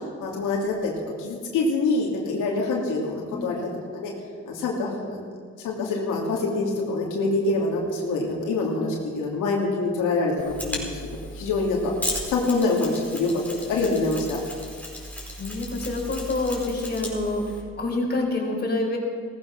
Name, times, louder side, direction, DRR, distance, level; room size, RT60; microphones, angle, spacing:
voice 1, 0.2-0.9 1.2-4.1 4.5-5.2 5.6-14.4, left 3 dB, 90° left, -2 dB, 2.8 m, -25 dB
Mechanisms, 10.4-17.6, left 1 dB, 5° left, 4.6 m, -36 dB
voice 2, 12.8-13.2 15.4-17.4 17.8-19.0, left 2 dB, 35° left, -1 dB, 4.5 m, -27 dB
17.0 x 14.0 x 6.0 m, 2.1 s
cardioid pair, 90°, 30 cm